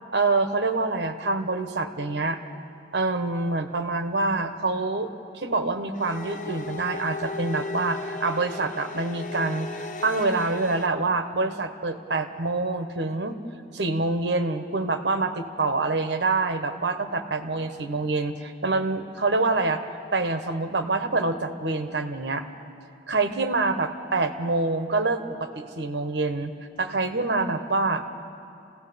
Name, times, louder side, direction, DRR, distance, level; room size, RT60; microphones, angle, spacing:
voice 1, 0.1-2.4 2.9-5.1 5.3-9.7 10.0-13.4 13.7-19.9 20.1-22.4 23.1-26.5 26.8-28.0, right 3 dB, 70° right, 7 dB, 1.3 m, -26 dB
sound 1, 5.9-10.9, left 3 dB, 45° left, 0.9 m, -35 dB
28.5 x 16.5 x 7.0 m, 2.6 s
head